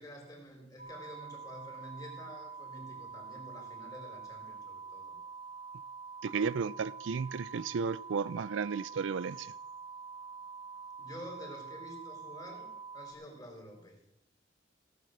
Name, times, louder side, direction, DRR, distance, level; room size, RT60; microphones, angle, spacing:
voice 1, 0.0-5.1 11.0-14.0, equal, 20° left, 4.0 m, -49 dB
sound 1, 0.8-13.1, right 5 dB, 50° right, 2.9 m, -46 dB
voice 2, 6.2-9.5, right 5 dB, 80° right, 0.4 m, -33 dB
16.5 x 7.8 x 6.6 m
head